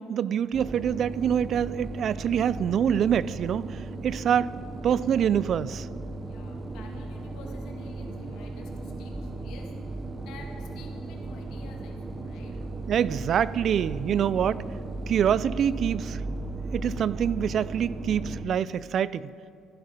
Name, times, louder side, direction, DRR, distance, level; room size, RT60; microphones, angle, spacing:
voice 1, 0.0-4.5 4.8-5.9 12.9-14.6 15.1-16.2 16.7-19.2, right 8 dB, 50° right, 0.3 m, -25 dB
sound 1, 0.5-18.5, right 2 dB, 25° right, 0.8 m, -36 dB
voice 2, 6.2-9.7 10.2-12.5, left 4 dB, 80° left, 2.2 m, -50 dB
14.5 x 11.5 x 5.2 m
cardioid pair, 110°, 0 cm